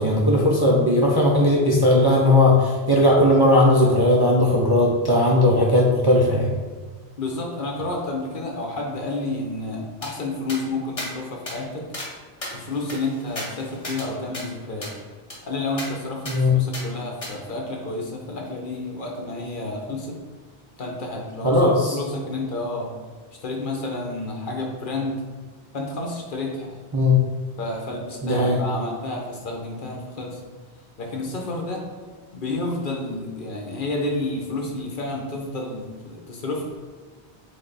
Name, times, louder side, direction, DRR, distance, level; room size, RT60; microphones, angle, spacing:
voice 1, 0.0-6.5 16.2-16.6 21.4-22.0 26.9-27.1 28.2-28.6, left 1 dB, 35° right, -4 dB, 0.4 m, -18 dB
voice 2, 7.2-11.8 12.5-14.9 15.4-20.2 20.8-22.9 23.4-25.2 25.7-26.8 27.6-30.4 31.0-31.9 32.3-36.6, left 2 dB, 55° left, 0 dB, 0.8 m, -30 dB
sound 1, 10.0-10.1 10.5-10.6 11.0-11.1 11.5-11.6 11.9-12.1 12.4-14.1 14.3-14.4 14.8-14.9 15.3-15.4 15.8-15.9 16.2-16.4 16.7-16.8 17.2-17.3, left 1 dB, 35° left, 1.0 m, -34 dB
3.6 x 3.3 x 3.9 m, 1.5 s
omnidirectional pair, 1.1 m